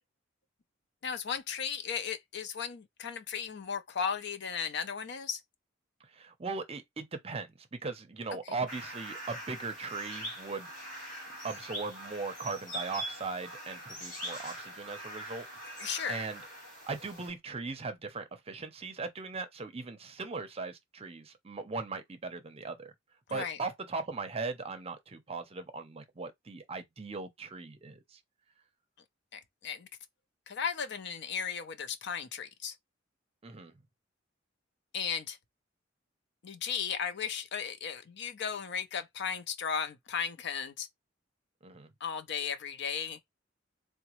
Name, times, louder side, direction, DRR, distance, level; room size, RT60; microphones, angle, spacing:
voice 1, 1.0-5.4 8.5-8.6 15.8-16.2 23.3-23.6 29.3-29.9 30.5-32.8 34.9-35.4 36.4-40.9 42.0-43.2, left 7 dB, 65° left, 0.6 m, -35 dB
voice 2, 6.1-10.7 11.4-15.5 15.8-16.4 16.9-22.9 23.3-28.2 33.4-33.8 41.6-41.9, right 4 dB, 30° right, 0.6 m, -39 dB
sound 1, 8.7-17.3, right 1 dB, 45° left, 2.1 m, -43 dB
3.9 x 2.1 x 3.0 m
head